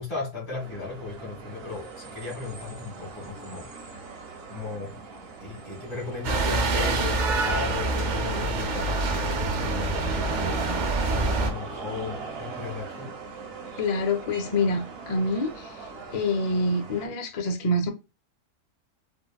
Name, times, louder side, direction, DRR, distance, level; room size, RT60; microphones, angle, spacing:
voice 1, 0.0-3.7 4.5-5.0 5.4-10.6 11.1-13.1, left 4 dB, 20° left, 1.5 m, -35 dB
sound 1, 0.6-17.1, right 4 dB, 55° right, 0.9 m, -42 dB
sound 2, 6.2-11.5, right 3 dB, 75° right, 0.4 m, -26 dB
voice 2, 13.8-15.7 16.1-17.9, left 2 dB, 60° left, 0.4 m, -26 dB
3.6 x 2.1 x 2.2 m
omnidirectional pair, 1.4 m